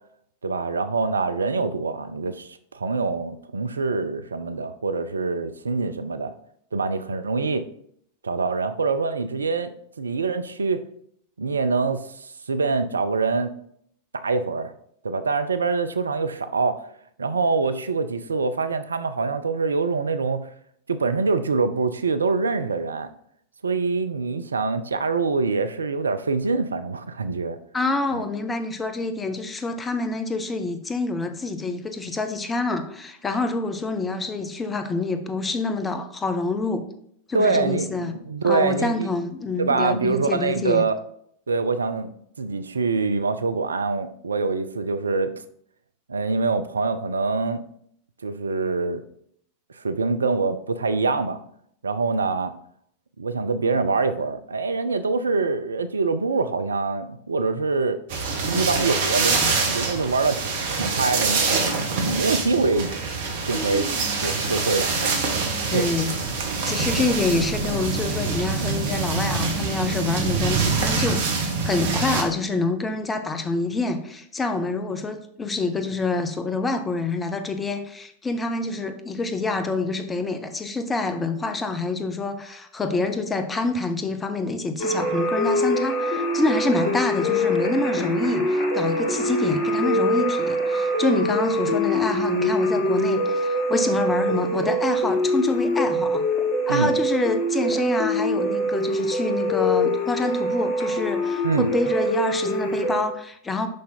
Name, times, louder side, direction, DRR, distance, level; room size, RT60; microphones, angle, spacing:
voice 1, 0.4-6.3 6.7-7.7 8.2-10.8 11.4-13.5 14.1-14.7 15.0-16.8 17.2-20.5 20.9-23.1 23.6-27.6 28.1-28.2 37.3-39.1 39.6-40.9 41.5-42.1 42.4-45.4 46.1-47.6 48.2-49.0 49.7-51.4 51.8-52.5 53.2-58.0 58.4-61.7 62.1-62.9 63.5-63.9 64.2-65.2 65.7-65.9 67.0-67.1 96.7-96.9 101.4-101.7, right 4 dB, 75° right, 11 dB, 0.5 m, -25 dB
voice 2, 27.7-36.9 37.3-38.1 38.4-40.8 65.7-66.1 66.7-96.2 96.7-103.7, left 3 dB, 15° left, 8 dB, 0.8 m, -27 dB
sound 1, 58.1-72.2, right 4 dB, 55° right, 1.3 m, -25 dB
Human voice, 63.4-64.6 64.9-68.4 68.8-68.9 69.8-69.9, right 3 dB, 20° right, 2.8 m, -39 dB
sound 2, 84.8-103.0, equal, 35° left, 1.6 m, -24 dB
6.3 x 5.5 x 4.3 m, 0.67 s
figure-of-eight pair, 90°, 0 cm